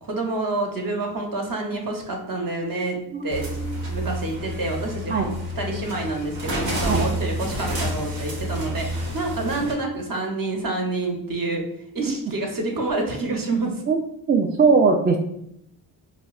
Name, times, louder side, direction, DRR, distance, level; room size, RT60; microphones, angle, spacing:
voice 1, 0.0-3.0 3.2-3.5 3.9-5.3 5.6-11.6 11.9-13.8, right 2 dB, 45° right, 1 dB, 0.9 m, -28 dB
sound 1, 3.3-9.7, equal, 75° right, 1.0 m, -29 dB
voice 2, 14.3-15.2, right 4 dB, 25° right, 3 dB, 0.4 m, -19 dB
4.0 x 2.0 x 2.4 m, 0.75 s
supercardioid pair, 45°, 46 cm